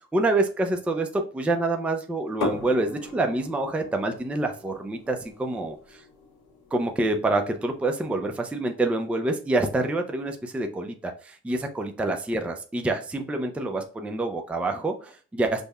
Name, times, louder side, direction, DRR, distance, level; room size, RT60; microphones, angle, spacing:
voice 1, 0.1-5.7 6.7-15.6, right 2 dB, 5° right, 4 dB, 0.4 m, -27 dB
sound 1, 2.4-8.1, left 2 dB, 85° left, 0.8 m, -38 dB
5.2 x 2.1 x 2.3 m, 0.38 s
cardioid pair, 90°, 30 cm